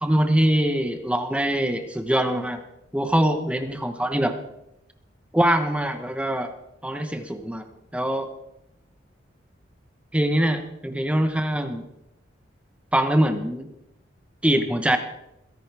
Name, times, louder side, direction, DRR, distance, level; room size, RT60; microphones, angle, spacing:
voice 1, 0.0-2.6 2.9-4.4 5.3-6.5 6.8-7.7 7.9-8.3 10.1-11.9 12.9-13.7 14.4-15.0, right 1 dB, 5° right, 7 dB, 1.1 m, -23 dB
22.0 x 11.0 x 3.5 m, 0.85 s
head